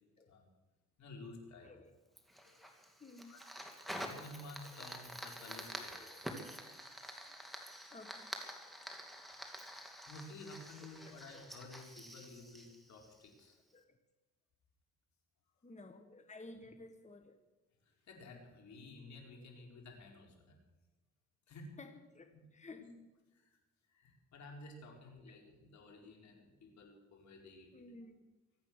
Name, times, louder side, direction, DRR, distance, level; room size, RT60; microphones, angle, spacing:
voice 1, 1.0-1.7 2.4-2.6 3.3-3.4 4.0-5.9 7.3-7.4 9.4-9.7 10.1-13.6 17.8-20.6 21.5-21.7 22.3-22.4 22.8-22.9 23.3-23.5 23.9-27.8, left 2 dB, 65° left, 1 dB, 4.7 m, -53 dB
Fire, 2.2-13.5, equal, ahead, 2.8 m, -48 dB
voice 2, 3.0-3.3 4.6-4.9 6.0-6.2 7.9-8.3 11.0-11.5 13.7-14.0 15.6-17.4 21.8-22.3 22.5-22.9 26.0-26.1 27.7-28.1, left 2 dB, 25° left, 6 dB, 1.5 m, -54 dB
24.0 x 8.9 x 6.6 m, 1.2 s
cardioid pair, 90°, 30 cm